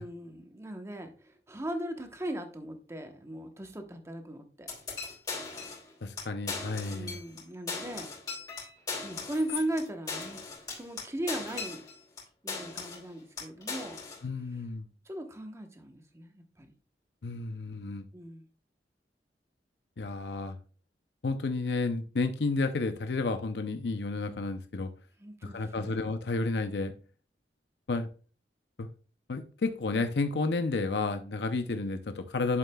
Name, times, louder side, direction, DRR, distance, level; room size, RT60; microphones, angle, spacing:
voice 1, 0.0-4.7 6.9-8.1 9.0-10.4 10.8-11.8 12.4-14.0 15.0-16.7 18.1-18.5 25.2-25.9, right 1 dB, 15° right, 5 dB, 1.0 m, -38 dB
sound 1, 4.7-5.9 6.2-6.3 6.5-7.4 7.7-12.2 12.5-13.1 13.4-14.2, left 4 dB, 25° left, 3.4 m, -38 dB
voice 2, 6.0-7.2 14.2-14.9 17.2-18.0 20.0-20.6 21.2-24.9 25.4-26.9 27.9-28.1 28.8-28.9 29.3-32.6, left 3 dB, 70° left, 8 dB, 0.6 m, -31 dB
8.6 x 7.3 x 2.3 m, 0.38 s
head